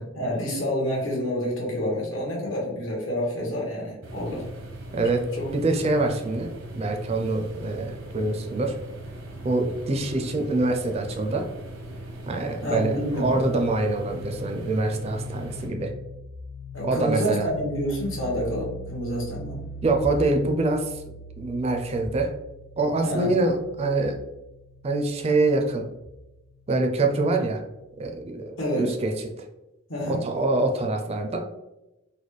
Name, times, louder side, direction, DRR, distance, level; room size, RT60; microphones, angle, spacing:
voice 1, 0.1-4.4 5.4-5.5 12.6-13.4 16.7-19.7 23.0-23.3 28.6-28.9 29.9-30.2, equal, 80° left, -3 dB, 1.3 m, -28 dB
sound 1, 4.0-15.7, right 1 dB, 80° right, 0.8 m, -39 dB
voice 2, 4.9-5.2 5.5-6.5 6.7-8.8 9.4-11.5 12.3-15.9 16.8-17.5 19.8-21.0 21.4-22.3 22.8-24.1 24.8-25.9 26.7-27.6 28.0-29.1 30.1-31.4, right 2 dB, 30° right, 3 dB, 0.4 m, -25 dB
sound 2, 12.6-28.1, left 1 dB, 60° left, 0.4 m, -41 dB
4.1 x 2.1 x 3.1 m, 0.96 s
head